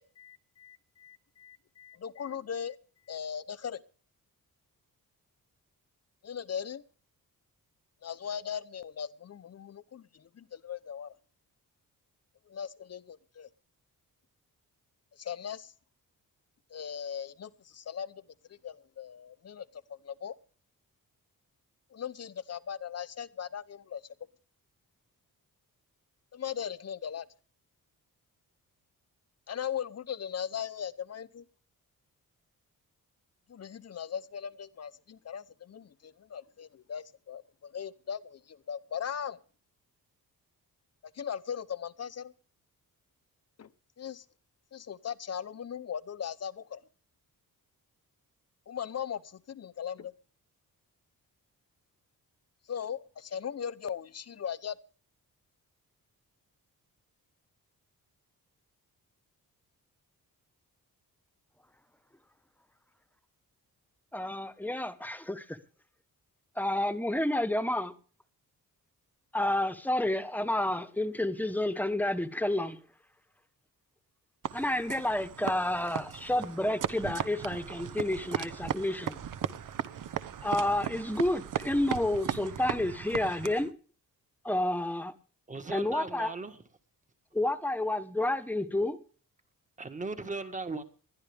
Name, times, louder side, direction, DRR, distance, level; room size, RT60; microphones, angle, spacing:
voice 1, 0.0-2.8 3.1-3.8 6.2-6.8 8.0-11.1 12.5-13.5 15.1-15.7 16.7-18.2 18.5-20.4 21.9-24.0 26.3-27.3 29.5-31.4 33.5-39.4 41.1-42.3 43.6-43.7 44.0-44.2 44.7-46.8 48.7-50.1 52.7-54.8, left 8 dB, 45° left, 0.8 m, -39 dB
voice 2, 64.1-65.6 66.6-67.9 69.3-72.8 74.5-79.2 80.4-83.7 84.4-85.1 85.7-86.3 87.3-89.0, left 1 dB, 5° left, 1.1 m, -30 dB
sound 1, 74.4-83.7, right 9 dB, 60° right, 1.0 m, -37 dB
voice 3, 85.5-86.6 89.8-90.8, right 3 dB, 20° right, 1.6 m, -37 dB
20.5 x 12.5 x 3.5 m
wide cardioid pair, 165°, 36 cm